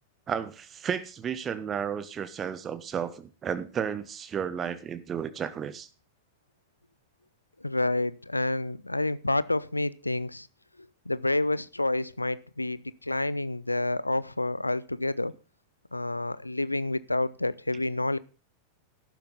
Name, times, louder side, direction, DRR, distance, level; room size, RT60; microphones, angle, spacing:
voice 1, 0.3-5.9, right 8 dB, 25° right, 13 dB, 1.3 m, -33 dB
voice 2, 7.6-10.5 11.1-15.3 15.9-18.2, left 2 dB, 85° left, 19 dB, 0.7 m, -29 dB
14.0 x 12.0 x 4.0 m, 0.33 s
figure-of-eight pair, 90°, 0 cm